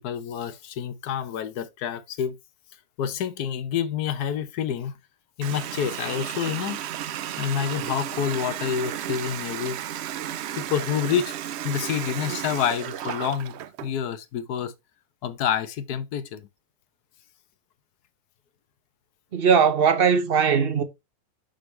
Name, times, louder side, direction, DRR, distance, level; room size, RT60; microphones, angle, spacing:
voice 1, 0.0-2.4 3.0-5.0 5.4-6.8 7.4-9.8 10.6-11.3 11.6-14.7 15.2-16.5, left 8 dB, 75° left, 1.3 m, -28 dB
Water tap faucet, 5.4-13.9, right 11 dB, 80° right, 0.6 m, -33 dB
voice 2, 19.3-20.8, right 6 dB, 50° right, 0.8 m, -19 dB
6.3 x 5.2 x 3.1 m
omnidirectional pair, 1.7 m